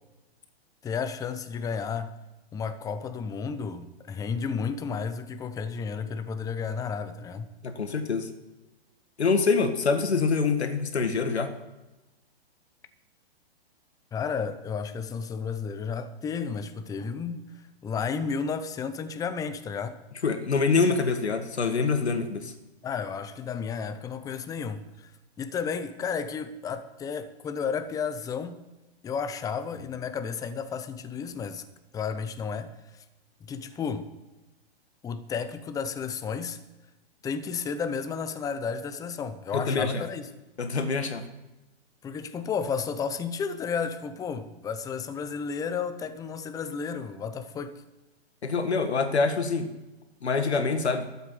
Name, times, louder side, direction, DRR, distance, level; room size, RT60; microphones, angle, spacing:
voice 1, 0.8-2.1 2.5-7.5 14.1-20.0 22.8-25.1 25.4-28.6 29.0-31.6 31.9-33.0 33.4-34.1 35.0-36.6 37.2-40.3 42.0-47.8, left 6 dB, 10° left, 0.7 m, -32 dB
voice 2, 7.6-8.3 9.2-11.5 20.2-22.5 39.5-40.1 40.6-41.3 48.4-49.7 50.2-51.1, left 4 dB, 85° left, 1.8 m, -25 dB
13.0 x 8.1 x 7.8 m
hypercardioid pair, 130°, 32 cm